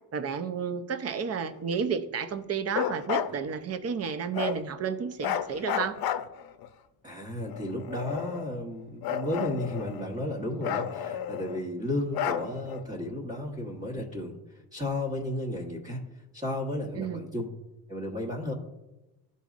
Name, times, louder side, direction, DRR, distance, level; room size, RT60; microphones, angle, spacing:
voice 1, 0.1-5.9 17.0-17.2, right 6 dB, 40° right, 11 dB, 0.6 m, -31 dB
Bark, 2.7-3.3 4.3-4.6 5.2-6.7 7.5-8.5 9.0-10.1 10.6-11.6 12.1-12.8, left 9 dB, 65° left, 0.6 m, -32 dB
voice 2, 7.0-16.0 16.3-17.5 17.9-18.5, left 1 dB, 20° right, -4 dB, 1.1 m, -33 dB
12.0 x 4.1 x 2.5 m, 1.0 s
cardioid pair, 100°, 40 cm